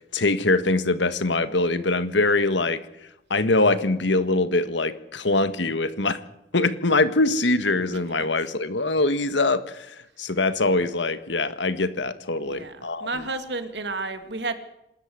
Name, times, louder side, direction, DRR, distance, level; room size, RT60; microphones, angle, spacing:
voice 1, 0.0-2.8 3.3-6.2 6.5-13.2, left 2 dB, 80° left, 12 dB, 1.6 m, -23 dB
voice 2, 12.4-14.5, right 3 dB, 70° right, 9 dB, 2.5 m, -31 dB
27.5 x 13.0 x 8.0 m, 0.88 s
head